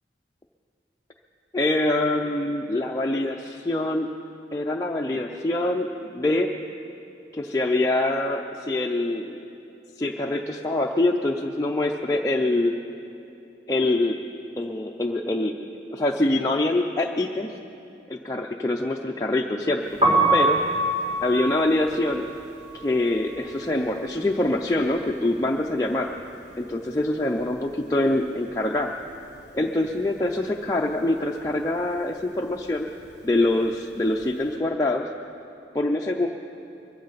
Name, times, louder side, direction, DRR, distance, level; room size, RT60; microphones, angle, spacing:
voice 1, 1.5-4.1 4.5-5.9 6.1-6.5 7.3-9.4 10.0-12.8 13.7-14.2 14.6-15.5 15.9-17.5 18.1-20.0 20.3-20.6 21.2-22.2 22.7-26.1 26.6-28.9 29.5-32.9 33.2-35.1 35.7-36.3, left 2 dB, 20° left, -1 dB, 0.5 m, -24 dB
Piano, 19.9-25.8 26.1-27.7 27.9-34.4, right 1 dB, 30° right, 3.5 m, -27 dB
22.5 x 15.0 x 4.1 m, 2.7 s
head